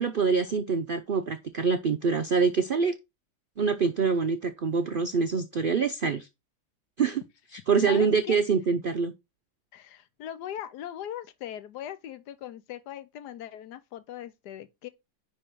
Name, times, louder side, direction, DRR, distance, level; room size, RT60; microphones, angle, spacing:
voice 1, 0.0-2.9 3.6-6.3 7.0-7.2 7.5-9.1, right 5 dB, 70° right, 0.5 m, -25 dB
voice 2, 7.9-8.4 9.7-14.9, left 10 dB, 80° left, 1.3 m, -39 dB
10.0 x 3.8 x 4.6 m
omnidirectional pair, 1.7 m